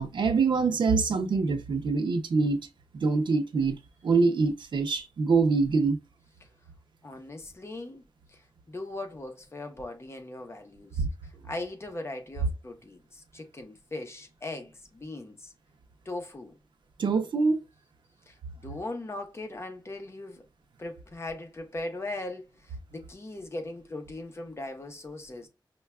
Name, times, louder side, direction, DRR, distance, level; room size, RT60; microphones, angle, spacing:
voice 1, 0.0-2.6 2.9-3.8 4.0-6.0 11.0-11.1 17.0-17.6, right 4 dB, 90° right, 0.5 m, -25 dB
voice 2, 7.0-8.0 8.3-15.5 16.0-16.5 18.3-18.4 18.6-20.4 20.8-25.5, left 2 dB, 35° left, 0.7 m, -39 dB
5.3 x 2.2 x 2.3 m
wide cardioid pair, 120°, 8 cm